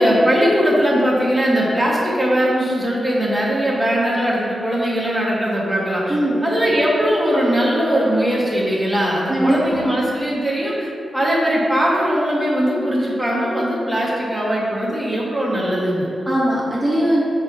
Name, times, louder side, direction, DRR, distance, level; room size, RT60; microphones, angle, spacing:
voice 1, 0.0-6.1 6.4-16.1, equal, ahead, -6 dB, 1.4 m, -20 dB
voice 2, 6.1-6.5 9.3-9.8 16.3-17.2, right 1 dB, 15° right, -7 dB, 1.3 m, -19 dB
6.4 x 3.5 x 5.3 m, 2.5 s
wide cardioid pair, 110°, 0 cm